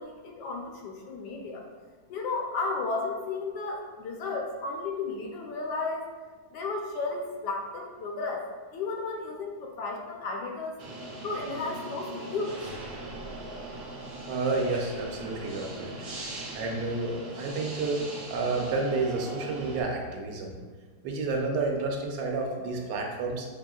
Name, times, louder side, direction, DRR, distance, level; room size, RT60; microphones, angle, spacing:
voice 1, 0.0-1.6 2.1-6.0 6.5-8.5 8.7-10.7 11.2-12.6, left 3 dB, 75° left, 1 dB, 1.2 m, -33 dB
sound 1, 10.8-19.8, right 2 dB, 60° right, 0.6 m, -40 dB
voice 2, 14.3-15.9 16.5-20.6 21.0-23.5, right 3 dB, 85° right, 1 dB, 1.3 m, -30 dB
5.5 x 2.7 x 2.3 m, 1.4 s
omnidirectional pair, 1.9 m